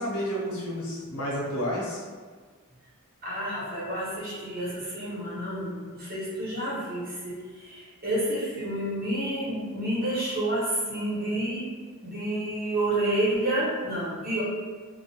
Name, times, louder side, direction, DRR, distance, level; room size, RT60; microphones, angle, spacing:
voice 1, 0.0-2.0, equal, 70° left, -4 dB, 0.7 m, -30 dB
voice 2, 3.2-11.7 12.0-14.4, right 1 dB, 40° right, -8 dB, 1.0 m, -29 dB
2.4 x 2.1 x 2.8 m, 1.5 s
head